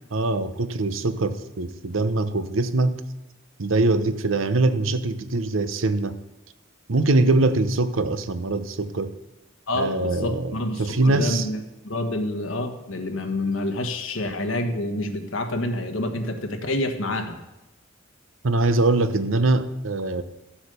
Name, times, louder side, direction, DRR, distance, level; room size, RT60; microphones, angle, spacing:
voice 1, 0.1-3.0 3.6-6.1 6.9-9.1 9.7-11.5 18.4-20.2, right 2 dB, 85° right, 0.8 m, -23 dB
voice 2, 9.7-11.6 11.8-17.4, left 1 dB, 80° left, 1.4 m, -28 dB
13.5 x 7.1 x 6.8 m
head